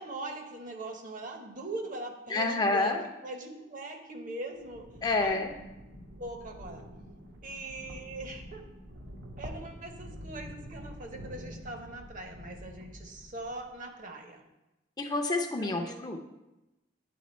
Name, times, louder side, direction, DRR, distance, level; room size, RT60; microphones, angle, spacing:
voice 1, 0.0-3.0 3.2-4.8 5.2-5.4 6.2-6.8 7.4-8.6 9.4-14.4 15.6-16.0, right 2 dB, 45° right, 4 dB, 0.8 m, -41 dB
voice 2, 2.3-3.0 5.0-5.5 15.0-16.2, left 3 dB, 20° left, 4 dB, 0.5 m, -28 dB
sound 1, 4.5-13.8, equal, 80° right, 0.9 m, -47 dB
8.6 x 3.6 x 4.2 m, 0.97 s
head